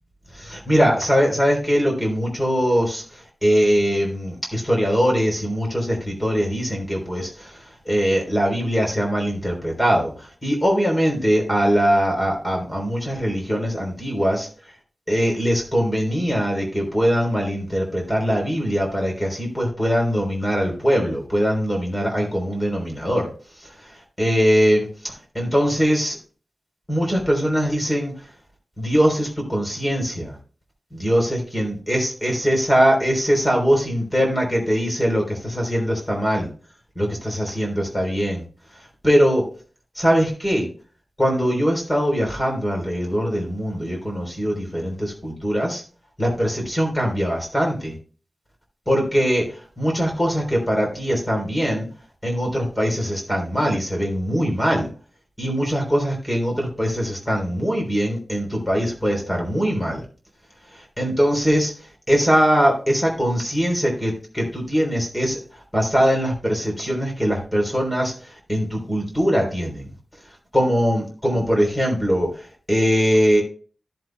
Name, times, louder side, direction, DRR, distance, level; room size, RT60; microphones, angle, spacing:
voice 1, 0.3-14.5 15.1-23.3 23.6-26.2 26.9-28.3 28.8-30.4 30.9-36.5 37.0-38.4 38.7-39.4 40.0-40.7 41.2-45.8 46.2-48.0 48.9-51.9 52.2-54.9 55.4-60.0 60.7-69.9 70.5-73.4, equal, 10° left, 0 dB, 3.6 m, -22 dB
14.5 x 7.8 x 2.2 m, 0.38 s
wide cardioid pair, 95°, 0 cm